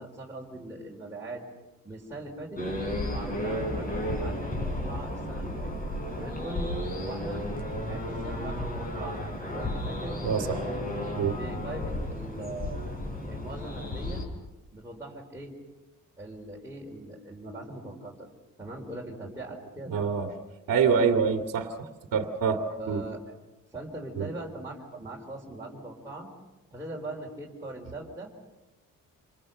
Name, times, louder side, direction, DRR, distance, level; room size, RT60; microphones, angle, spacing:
voice 1, 0.0-1.4 1.8-2.6 3.1-5.7 6.2-6.8 7.0-7.4 7.9-9.2 9.5-10.2 10.7-10.8 11.4-12.8 13.3-14.2 14.7-15.5 16.2-18.3 18.6-20.1 22.8-23.2 23.7-26.3 26.7-28.3, right 2 dB, 10° right, -4 dB, 4.0 m, -40 dB
sound 1, 2.6-14.2, left 1 dB, 25° left, 5.5 m, -33 dB
voice 2, 10.2-10.7 11.2-11.4 19.9-20.3 20.7-23.0 24.1-24.3, right 6 dB, 75° right, 5 dB, 2.1 m, -26 dB
27.5 x 27.5 x 6.7 m, 1.0 s
cardioid pair, 165°, 33 cm